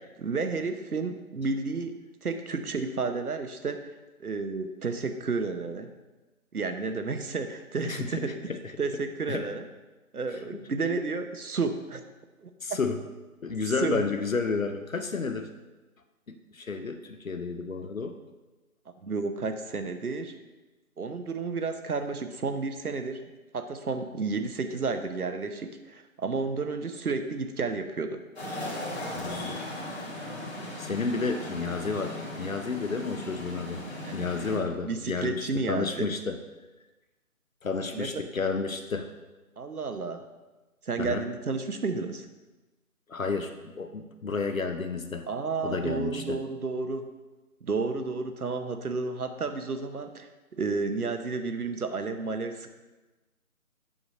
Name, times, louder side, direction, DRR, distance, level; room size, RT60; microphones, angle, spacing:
voice 1, 0.2-3.8 4.2-5.9 6.5-8.3 8.8-9.7 10.1-12.0 12.4-12.8 13.8-14.0 19.0-20.4 21.0-23.2 23.5-28.2 34.0-34.2 34.8-36.1 37.9-38.1 39.6-40.2 40.8-42.3 45.3-47.1 47.6-52.7, right 4 dB, 75° right, 8 dB, 1.0 m, -31 dB
voice 2, 7.8-8.7 9.3-9.5 10.3-10.4 12.6-13.0 13.4-15.5 16.3-18.2 29.2-29.6 30.8-33.8 34.1-36.4 37.6-39.1 41.0-41.2 43.1-45.3 45.6-46.4, left 4 dB, 65° left, 7 dB, 0.8 m, -31 dB
sound 1, 28.4-34.6, left 1 dB, 45° left, 2.0 m, -37 dB
7.7 x 6.2 x 5.2 m, 1.1 s
figure-of-eight pair, 165°, 44 cm